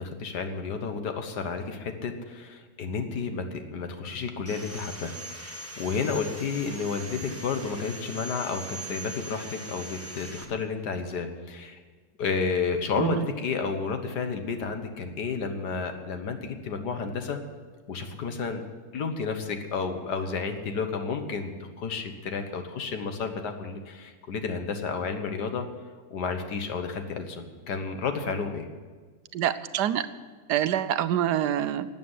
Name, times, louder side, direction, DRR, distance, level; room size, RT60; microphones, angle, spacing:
voice 1, 0.0-11.8 12.2-17.4 17.9-18.6 18.9-25.7 26.1-28.7, left 5 dB, 85° left, 6 dB, 1.9 m, -31 dB
Sawing, 4.5-10.5, right 1 dB, 10° right, 1.2 m, -41 dB
voice 2, 29.3-30.1 30.5-31.9, right 11 dB, 85° right, 13 dB, 1.3 m, -26 dB
13.0 x 8.5 x 9.7 m, 1.5 s
omnidirectional pair, 1.7 m